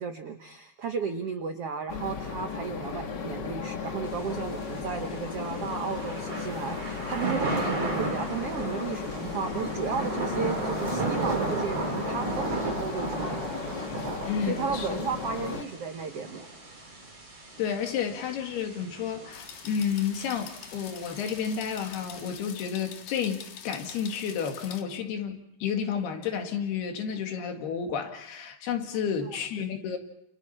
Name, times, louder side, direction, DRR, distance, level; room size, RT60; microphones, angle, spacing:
voice 1, 0.0-13.6 14.4-16.5, right 6 dB, 85° right, 6 dB, 1.3 m, -34 dB
sound 1, 1.9-15.6, left 6 dB, 50° left, 1.3 m, -35 dB
Thunder / Rain, 4.1-22.3, right 3 dB, 40° right, 6.8 m, -35 dB
voice 2, 14.3-15.0 17.6-30.0, left 7 dB, 85° left, 4 dB, 4.0 m, -31 dB
sound 2, 19.3-24.8, left 8 dB, 65° left, 3.1 m, -45 dB
29.5 x 29.0 x 4.4 m, 0.74 s
omnidirectional pair, 4.5 m